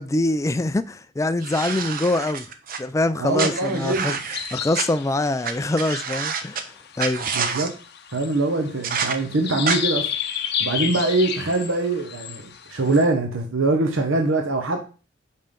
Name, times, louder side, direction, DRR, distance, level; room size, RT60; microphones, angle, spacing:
voice 1, 0.0-2.5 2.8-4.2 4.5-6.6 7.0-7.3, left 2 dB, 15° left, 0.3 m, -24 dB
sound 1, 1.4-2.8 3.4-4.8 5.4-5.5 5.8-6.6 7.0-7.7 8.8-9.1 9.6-9.8, right 6 dB, 45° right, 0.8 m, -27 dB
voice 2, 3.2-4.2 7.3-7.7 8.1-10.1 10.6-12.4 12.7-14.9, right 2 dB, 75° right, 1.0 m, -23 dB
sound 2, 3.3-13.1, left 8 dB, 55° left, 0.7 m, -33 dB
5.4 x 4.3 x 5.2 m
head